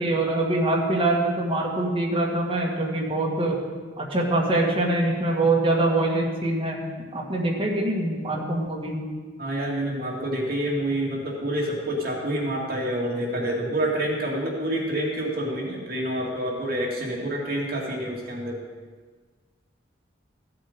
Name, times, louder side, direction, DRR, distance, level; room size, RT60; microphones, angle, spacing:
voice 1, 0.0-3.6 4.0-6.8 7.1-9.0, right 2 dB, 30° right, -3 dB, 1.8 m, -24 dB
voice 2, 9.4-18.6, right 1 dB, 50° right, -3 dB, 2.3 m, -27 dB
14.5 x 7.8 x 5.2 m, 1.5 s
head